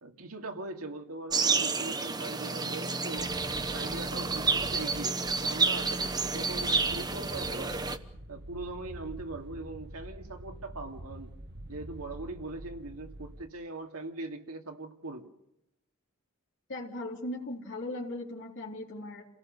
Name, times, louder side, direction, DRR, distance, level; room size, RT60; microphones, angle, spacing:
voice 1, 0.0-3.4 3.7-7.9 8.3-11.3 11.7-15.3, right 2 dB, 80° right, 3 dB, 2.5 m, -41 dB
sound 1, 1.3-8.0, right 4 dB, 20° right, 1.0 m, -30 dB
sound 2, 3.2-13.5, right 1 dB, 50° right, 1.1 m, -46 dB
voice 2, 16.7-19.3, left 1 dB, 55° left, -3 dB, 3.7 m, -38 dB
29.0 x 17.5 x 6.7 m, 0.84 s
head